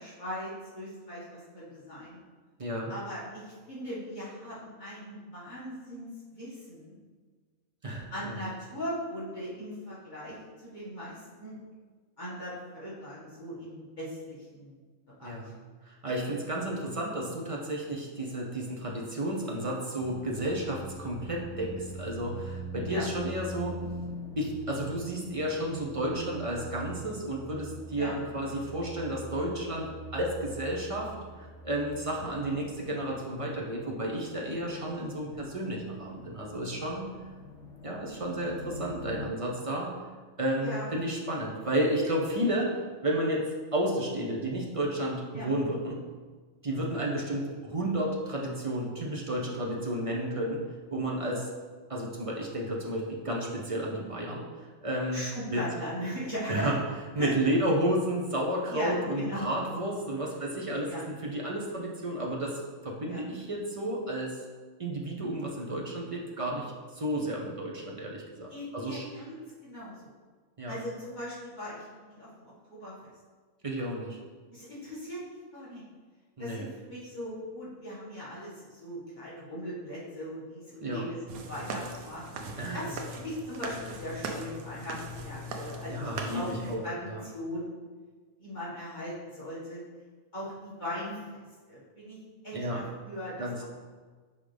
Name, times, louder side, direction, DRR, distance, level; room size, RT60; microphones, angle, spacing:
voice 1, 0.0-2.2 2.9-7.0 8.1-10.4 10.6-11.6 12.2-14.8 15.2-15.3 22.9-23.1 28.0-28.2 40.6-40.9 45.3-45.5 55.1-56.7 57.2-57.3 58.7-59.5 60.9-61.0 63.1-63.2 68.5-69.4 69.6-70.0 70.7-73.1 74.5-75.8 76.4-82.2 82.7-86.1 86.3-87.7 88.4-89.8 90.3-92.2 92.4-93.6, equal, 35° left, -10 dB, 1.8 m, -39 dB
voice 2, 2.6-2.9 7.8-8.4 15.2-15.5 15.9-23.8 24.4-37.1 37.8-39.9 40.4-42.7 43.0-46.0 46.6-50.6 50.9-51.5 51.9-54.4 54.8-55.2 55.5-55.6 56.5-56.8 57.1-64.4 64.8-69.1 70.6-70.8 73.6-74.2 76.4-76.7 80.8-81.0 82.6-82.8 85.9-87.2 92.5-92.8 93.4-93.6, right 1 dB, 35° right, -2 dB, 0.5 m, -32 dB
sound 1, 20.0-39.3, equal, 60° left, 1.3 m, -44 dB
sound 2, 81.3-86.8, right 1 dB, 85° right, 1.1 m, -39 dB
5.7 x 5.0 x 3.4 m, 1.5 s
omnidirectional pair, 1.5 m